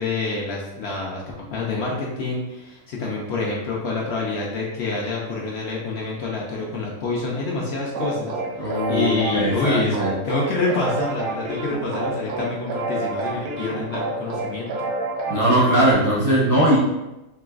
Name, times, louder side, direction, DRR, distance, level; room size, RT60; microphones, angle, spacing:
voice 1, 0.0-10.0 10.2-14.9, left 3 dB, 65° left, -2 dB, 0.7 m, -27 dB
sound 1, 7.9-15.9, right 2 dB, 85° right, 1.0 m, -29 dB
voice 2, 8.6-10.1 15.3-16.8, right 1 dB, 25° right, -8 dB, 0.4 m, -19 dB
3.2 x 2.9 x 2.3 m, 0.98 s
omnidirectional pair, 1.4 m